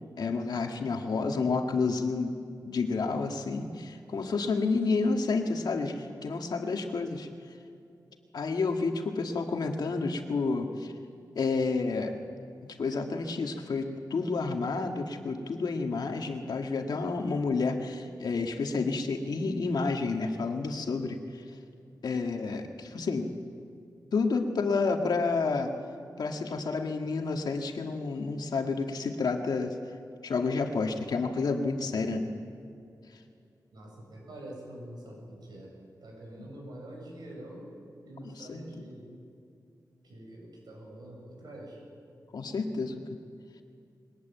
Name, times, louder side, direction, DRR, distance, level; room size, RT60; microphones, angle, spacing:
voice 1, 0.1-2.4 2.6-7.3 8.3-10.9 11.4-12.1 12.6-21.2 22.0-23.3 24.1-25.7 26.2-29.8 30.2-32.3 38.2-38.6 42.3-42.9, left 4 dB, 75° left, 4 dB, 1.9 m, -30 dB
voice 2, 33.7-35.7 36.0-37.7 38.0-39.2 40.0-41.8, right 1 dB, 80° right, -1 dB, 7.6 m, -45 dB
22.0 x 19.0 x 9.2 m, 2.5 s
wide cardioid pair, 145°, 7 cm